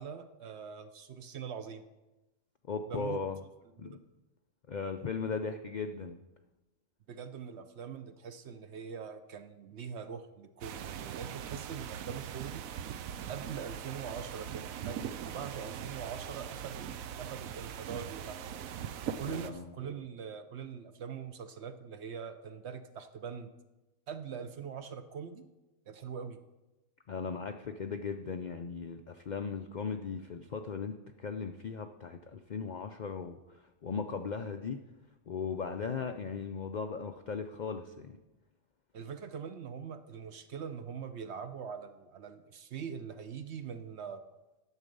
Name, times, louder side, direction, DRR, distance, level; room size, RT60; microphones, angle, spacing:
voice 1, 0.0-1.9 2.9-3.2 3.8-4.0 7.1-12.6 13.3-16.9 17.2-18.4 19.1-23.5 24.1-25.5 25.9-26.4 38.9-44.2, right 7 dB, 60° right, 9 dB, 0.9 m, -42 dB
voice 2, 2.7-3.4 3.8-4.0 4.7-6.2 19.3-19.7 27.1-34.8 35.3-38.2, left 5 dB, 65° left, 6 dB, 0.4 m, -37 dB
sound 1, 10.6-19.5, right 9 dB, 85° right, 1.0 m, -41 dB
11.0 x 7.3 x 5.3 m, 1.0 s
omnidirectional pair, 1.4 m